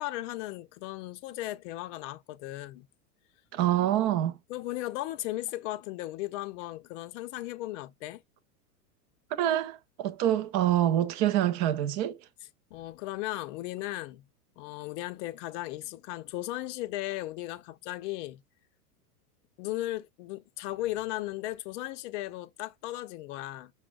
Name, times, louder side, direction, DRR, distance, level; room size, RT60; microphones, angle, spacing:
voice 1, 0.0-2.9 4.5-8.2 12.7-14.3 14.6-18.4 19.6-23.7, left 16 dB, 50° left, 0.6 m, -36 dB
voice 2, 3.5-4.4 9.3-12.3, right 12 dB, 30° right, 0.4 m, -26 dB
5.9 x 2.2 x 2.2 m
hypercardioid pair, 105°, 47 cm